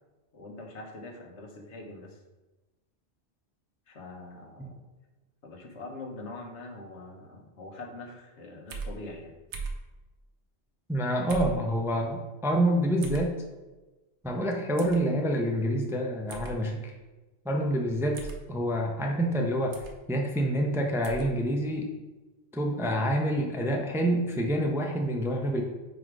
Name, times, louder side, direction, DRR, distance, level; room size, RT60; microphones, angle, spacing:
voice 1, 0.3-2.2 3.9-4.8 5.4-9.3, left 2 dB, 85° left, 2 dB, 1.2 m, -43 dB
sound 1, 8.7-8.9 9.5-9.8 11.3-11.6 13.0-13.3 14.8-15.0 16.3-16.5 18.1-18.4 19.7-20.0 21.0-21.3, right 4 dB, 85° right, 1.1 m, -37 dB
voice 2, 10.9-13.3 14.2-16.8 17.5-19.8 20.1-21.9 22.5-25.6, equal, 5° right, 1 dB, 0.4 m, -27 dB
5.0 x 4.2 x 4.6 m, 1.1 s
omnidirectional pair, 1.2 m